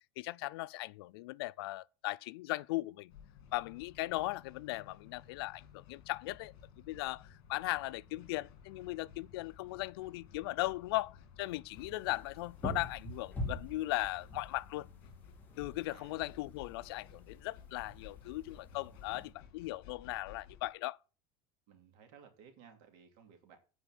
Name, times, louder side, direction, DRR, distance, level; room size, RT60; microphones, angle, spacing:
voice 1, 0.2-3.1 3.5-6.5 6.9-14.9 15.6-21.0, left 19 dB, 85° left, 0.4 m, -38 dB
sound 1, 3.1-20.7, left 7 dB, 60° left, 2.5 m, -56 dB
sound 2, 11.7-19.3, left 1 dB, 15° left, 1.9 m, -45 dB
voice 2, 15.9-16.2 21.7-23.6, right 7 dB, 60° right, 3.0 m, -58 dB
9.3 x 5.0 x 7.7 m
cardioid pair, 170°, 12 cm